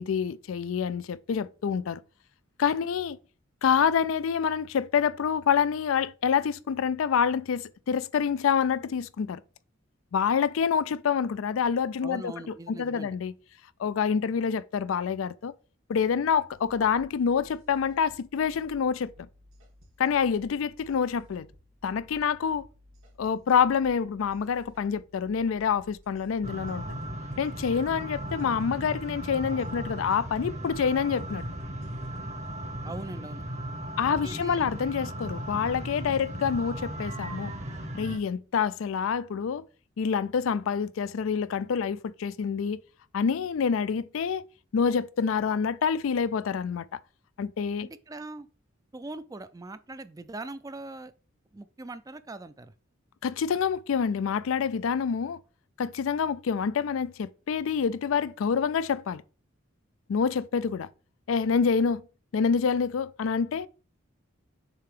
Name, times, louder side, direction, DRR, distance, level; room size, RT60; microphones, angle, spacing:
voice 1, 0.0-2.0 2.6-3.2 3.6-9.4 10.1-12.3 12.7-13.3 13.8-15.5 15.9-19.1 20.0-21.5 21.8-22.7 23.2-26.8 27.4-31.4 34.0-37.5 37.9-39.6 40.0-42.8 43.1-44.4 44.7-47.0 47.4-47.9 53.2-55.4 55.8-59.2 60.1-60.9 61.3-62.0 62.3-63.7, left 6 dB, 80° left, 0.4 m, -27 dB
voice 2, 12.0-13.2 32.8-33.4 34.1-34.7 47.8-48.5 48.9-51.1 51.5-52.7, right 2 dB, 15° right, 0.4 m, -41 dB
sound 1, 16.5-32.5, equal, 80° right, 2.1 m, -55 dB
sound 2, 26.4-38.2, right 1 dB, 35° right, 1.0 m, -36 dB
6.9 x 2.9 x 4.9 m
head